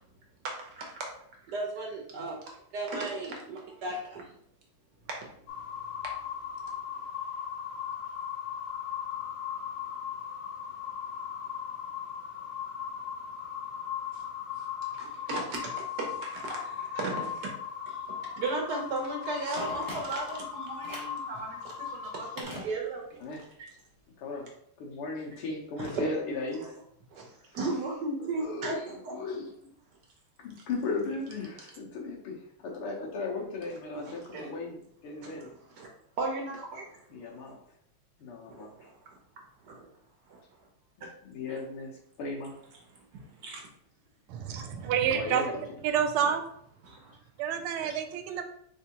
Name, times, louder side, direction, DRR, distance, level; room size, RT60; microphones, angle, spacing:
voice 1, 0.4-1.1 1.5-2.4 2.7-4.3 14.1-14.2 14.6-14.7 14.9-17.5 17.9-18.0 18.4-23.2 25.8-26.1 26.5-26.7 27.1-29.1 33.9-34.5 35.2-35.5 35.7-35.9 36.2-36.9 37.5-37.6 38.5-39.2 39.6-39.9 40.3-40.4 41.5-41.6 43.1-43.7 44.8-44.9 46.8-47.1, right 2 dB, 60° right, 0 dB, 1.2 m, -36 dB
sound 1, 5.5-22.4, left 8 dB, 70° left, 1.2 m, -38 dB
Telephone, 19.6-20.4 20.8-21.2 22.4-23.2 23.5-23.6, equal, 25° right, 0.4 m, -41 dB
voice 2, 24.2-24.5 24.8-26.6 28.2-29.5 30.4-35.5 37.1-37.6 38.2-38.9 41.0-42.6 45.1-45.8 46.2-46.3 47.8-47.9, left 3 dB, 85° left, -1 dB, 1.9 m, -37 dB
voice 3, 44.3-45.5 45.8-46.4 47.4-48.4, right 8 dB, 85° right, 7 dB, 1.5 m, -28 dB
4.2 x 3.5 x 2.8 m, 0.68 s
omnidirectional pair, 2.4 m